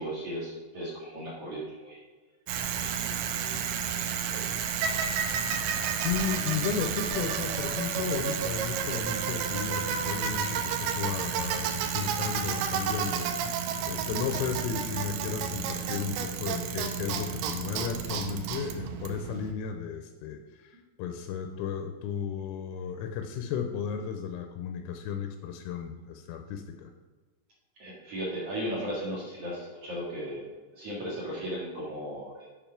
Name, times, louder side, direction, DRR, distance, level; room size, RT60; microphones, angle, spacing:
voice 1, 0.0-2.0 2.7-4.6 27.8-30.5 30.7-32.5, equal, 70° right, -6 dB, 1.4 m, -37 dB
Bicycle, 2.5-19.5, right 7 dB, 90° right, 2.6 m, -31 dB
voice 2, 5.6-13.6 13.8-26.9, left 7 dB, 85° left, 6 dB, 3.2 m, -34 dB
9.0 x 5.0 x 5.7 m, 1.3 s
omnidirectional pair, 5.9 m